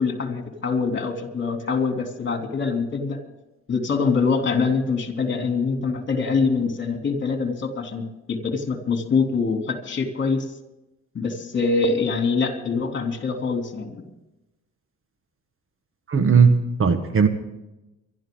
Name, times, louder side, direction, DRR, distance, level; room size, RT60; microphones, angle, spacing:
voice 1, 0.0-3.2 3.7-10.5 11.1-14.1, left 4 dB, 40° left, 4 dB, 3.2 m, -24 dB
voice 2, 16.1-17.3, right 5 dB, 45° right, 9 dB, 1.5 m, -17 dB
23.5 x 12.5 x 3.9 m, 0.95 s
cardioid pair, 90°, 30 cm